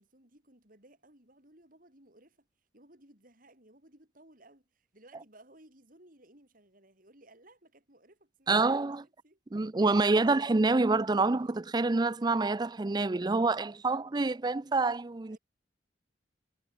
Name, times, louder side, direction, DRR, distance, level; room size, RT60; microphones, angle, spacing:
voice 1, 0.0-2.5 2.7-8.7 9.0-9.4 13.3-13.5 15.3-15.4, right 1 dB, 45° right, 7.8 m, -59 dB
voice 2, 8.5-9.0 9.5-15.4, right 3 dB, 20° right, 0.5 m, -27 dB
head